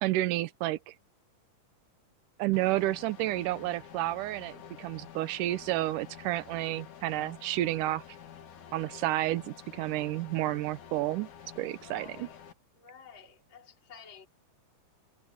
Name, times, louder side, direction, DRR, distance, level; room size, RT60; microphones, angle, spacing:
voice 1, 0.0-0.9 2.4-8.0 8.7-11.3 11.6-12.3, right 16 dB, 80° right, 1.9 m, -31 dB
sound 1, 2.5-12.5, left 8 dB, 55° left, 3.0 m, -49 dB
voice 2, 11.7-12.4 12.7-14.3, left 5 dB, 30° left, 4.0 m, -52 dB
omnidirectional pair, 4.6 m